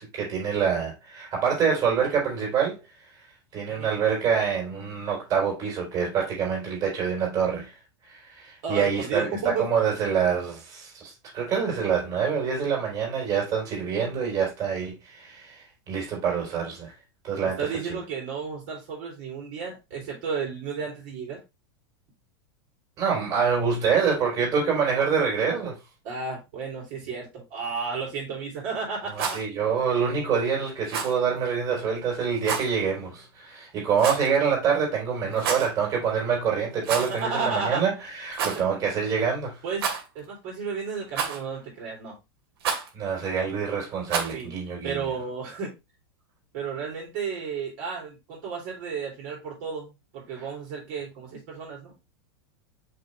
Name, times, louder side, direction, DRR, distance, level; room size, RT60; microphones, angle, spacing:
voice 1, 0.0-2.8 3.5-7.7 8.0-16.9 17.2-18.0 23.0-25.8 29.1-39.6 42.9-45.1 50.3-50.4, right 6 dB, 25° right, 3.5 m, -26 dB
voice 2, 3.7-4.0 8.6-9.7 17.4-21.4 26.0-29.4 37.1-37.8 39.6-39.9 40.1-42.2 44.3-44.5 44.8-45.7 46.5-51.9, right 5 dB, 45° right, 3.1 m, -33 dB
Rattle, 29.0-29.4 30.9-31.2 32.4-32.7 34.0-34.4 35.3-35.7 36.8-37.2 37.5-37.6 38.3-38.6 39.7-40.2 41.1-41.6 42.6-42.9 44.1-44.4, right 6 dB, 70° right, 2.5 m, -29 dB
5.8 x 5.5 x 3.2 m
supercardioid pair, 165°, 14 cm